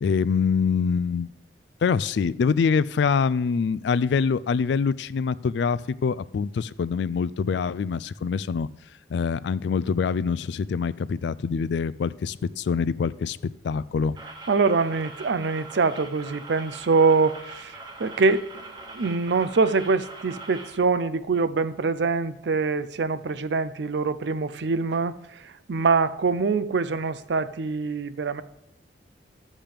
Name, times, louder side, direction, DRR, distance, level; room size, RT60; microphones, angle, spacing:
voice 1, 0.0-1.3 1.8-8.7 9.1-13.4 13.6-14.2, left 5 dB, 65° left, 0.3 m, -25 dB
sound 1, 14.2-20.8, right 2 dB, 25° right, 1.0 m, -42 dB
voice 2, 14.5-28.4, right 4 dB, 65° right, 0.5 m, -24 dB
12.0 x 7.3 x 3.4 m
head